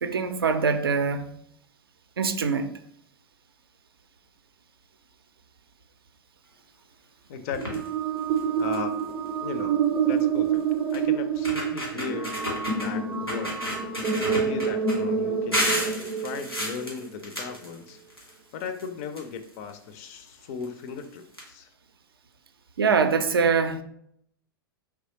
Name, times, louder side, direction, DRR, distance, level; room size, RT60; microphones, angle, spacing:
voice 1, 0.0-1.3 2.2-2.7 22.8-23.8, right 5 dB, 70° right, 0.4 m, -23 dB
voice 2, 7.3-7.8 8.6-9.8 10.0-10.6 10.9-12.3 12.8-13.6 14.2-21.7, left 6 dB, 40° left, 0.4 m, -37 dB
sound 1, 7.5-7.9 8.4-8.5 8.7-9.0 10.2-10.3 10.9-11.0 11.3-12.9 13.3-15.0 15.5-18.3 18.6-19.7 20.6-20.7 21.0-21.1 21.3-21.4, equal, 90° left, 1.4 m, -31 dB
sound 2, 7.6-16.9, right 6 dB, 15° right, 0.5 m, -27 dB
3.5 x 2.9 x 2.8 m
figure-of-eight pair, 100°, 13 cm